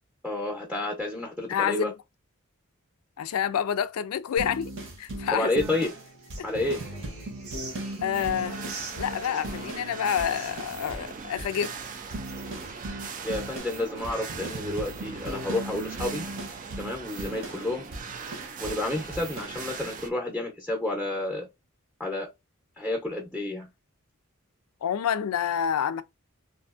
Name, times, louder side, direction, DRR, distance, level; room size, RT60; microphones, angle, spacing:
voice 1, 0.2-1.9 5.3-5.9 6.4-6.8 13.2-16.3 16.8-17.9 18.6-21.5 22.0-22.3 22.8-23.7, left 2 dB, ahead, 0.6 m, -30 dB
voice 2, 1.5-1.9 3.2-4.7 5.0-5.6 6.4-6.5 8.0-8.6 8.9-11.8 24.8-26.0, left 8 dB, 90° left, 0.4 m, -28 dB
sound 1, 4.4-9.9 10.2-11.1 11.4-18.8 19.1-19.6, right 1 dB, 60° right, 0.8 m, -38 dB
Human voice / Acoustic guitar, 5.6-13.6, right 3 dB, 90° right, 1.0 m, -46 dB
sound 2, 8.1-20.1, right 5 dB, 40° right, 0.4 m, -40 dB
2.6 x 2.4 x 2.4 m
head